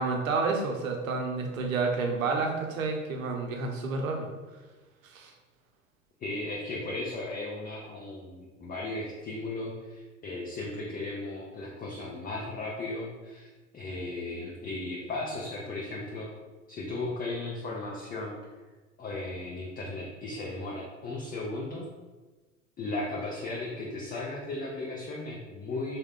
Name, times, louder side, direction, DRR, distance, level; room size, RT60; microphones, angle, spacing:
voice 1, 0.0-4.3 5.0-5.3, right 4 dB, 80° right, 3 dB, 0.6 m, -30 dB
voice 2, 6.2-16.3 16.7-18.4 19.0-21.9 22.8-26.0, left 2 dB, 20° left, -3 dB, 0.5 m, -36 dB
3.5 x 2.2 x 3.5 m, 1.3 s
figure-of-eight pair, 75°, 40 cm